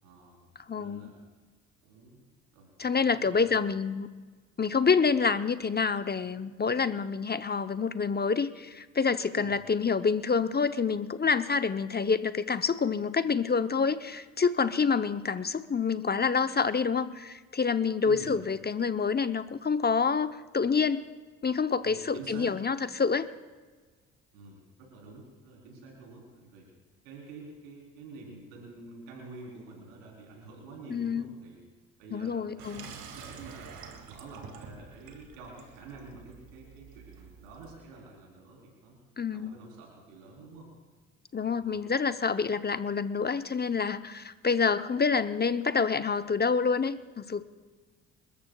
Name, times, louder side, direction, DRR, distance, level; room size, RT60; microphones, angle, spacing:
voice 1, 0.0-1.2 1.8-3.7 9.3-9.5 18.0-18.3 21.8-22.5 24.3-26.7 27.0-31.6 32.0-33.7 34.1-39.0 39.3-40.7 41.4-41.6, right 3 dB, 85° right, -2 dB, 4.0 m, -48 dB
voice 2, 0.7-1.0 2.8-4.1 4.6-21.0 21.4-23.3 30.9-31.2 32.1-32.9 39.2-39.5 41.3-47.4, left 5 dB, 25° left, 11 dB, 0.8 m, -27 dB
Water tap faucet / Sink (filling or washing), 32.6-37.8, right 6 dB, 65° right, 2.4 m, -48 dB
28.0 x 13.5 x 2.4 m, 1.4 s
hypercardioid pair, 50°, 38 cm